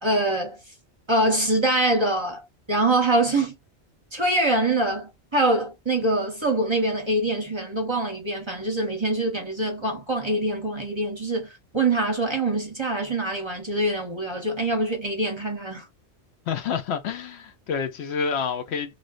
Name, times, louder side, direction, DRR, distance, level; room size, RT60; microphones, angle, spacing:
voice 1, 0.0-0.6 1.1-2.4 2.7-3.5 4.1-15.9, right 2 dB, 25° right, 0.8 m, -24 dB
voice 2, 16.5-18.9, left 6 dB, 70° left, 0.8 m, -28 dB
3.2 x 2.7 x 2.4 m
omnidirectional pair, 1.2 m